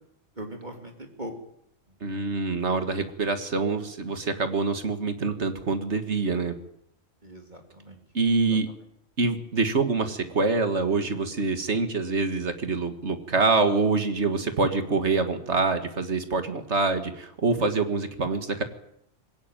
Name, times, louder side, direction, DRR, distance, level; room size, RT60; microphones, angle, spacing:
voice 1, 0.4-1.3 2.1-2.3 7.2-8.0 8.5-8.6, right 1 dB, 35° right, 3 dB, 2.9 m, -40 dB
voice 2, 2.0-6.5 8.1-8.7 9.2-18.6, right 3 dB, 60° right, 8 dB, 2.1 m, -25 dB
21.0 x 17.5 x 9.1 m, 0.75 s
omnidirectional pair, 1.3 m